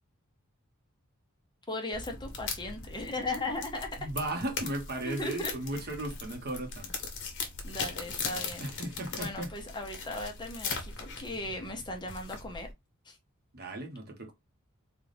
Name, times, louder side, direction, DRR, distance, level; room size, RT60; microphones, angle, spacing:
voice 1, 1.7-4.0 5.0-5.5 7.6-8.6 9.1-12.7 13.0-13.2, left 2 dB, 20° left, 0.8 m, -37 dB
sound 1, 1.9-12.7, left 4 dB, 60° left, 1.1 m, -40 dB
voice 2, 4.0-6.9 8.6-9.5 13.5-14.3, right 1 dB, 50° right, 1.0 m, -36 dB
4.0 x 2.4 x 3.3 m
head